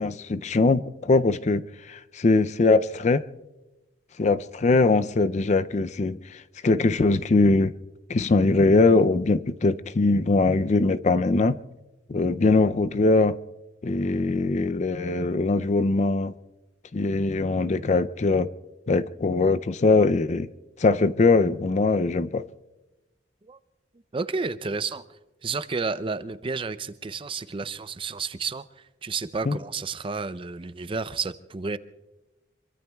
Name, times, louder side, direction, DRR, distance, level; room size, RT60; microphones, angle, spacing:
voice 1, 0.0-3.2 4.2-7.7 8.1-11.6 12.1-13.4 13.8-16.3 16.9-18.5 18.9-20.5 20.8-22.4 29.5-29.6, left 3 dB, 40° left, 0.4 m, -21 dB
voice 2, 24.1-25.1 25.4-31.8, right 4 dB, 30° right, 0.5 m, -31 dB
26.0 x 23.5 x 2.3 m
head